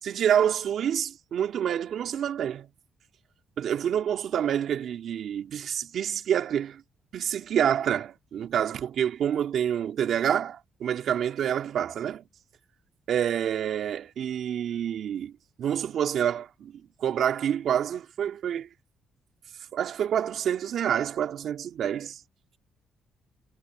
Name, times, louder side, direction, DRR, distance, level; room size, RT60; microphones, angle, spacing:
voice 1, 0.0-2.7 3.6-6.8 7.1-12.2 13.1-15.3 15.6-18.7 19.7-22.2, right 9 dB, 65° right, 2.6 m, -27 dB
cardioid pair, 90°, 0 cm